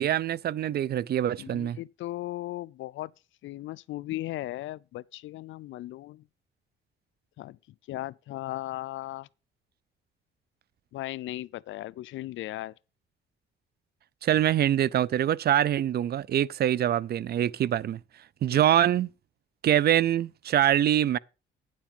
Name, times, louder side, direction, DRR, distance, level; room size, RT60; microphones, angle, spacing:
voice 1, 0.0-1.8 14.2-18.0 18.4-19.1 19.6-21.2, right 11 dB, 55° right, 0.5 m, -24 dB
voice 2, 1.4-3.1 3.4-6.2 7.4-7.6 7.9-9.3 10.9-12.7 18.5-18.6, left 16 dB, 75° left, 0.5 m, -37 dB
9.8 x 7.4 x 5.3 m
cardioid pair, 90°, 20 cm